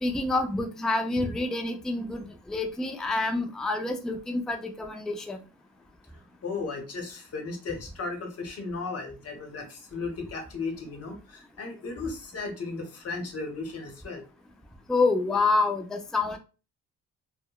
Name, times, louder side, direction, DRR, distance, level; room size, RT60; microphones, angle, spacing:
voice 1, 0.0-5.4 14.9-16.4, left 3 dB, ahead, 4 dB, 0.3 m, -27 dB
voice 2, 6.4-14.2, left 3 dB, 55° left, 3 dB, 0.9 m, -35 dB
2.8 x 2.1 x 2.2 m, 0.32 s
cardioid pair, 90°, 30 cm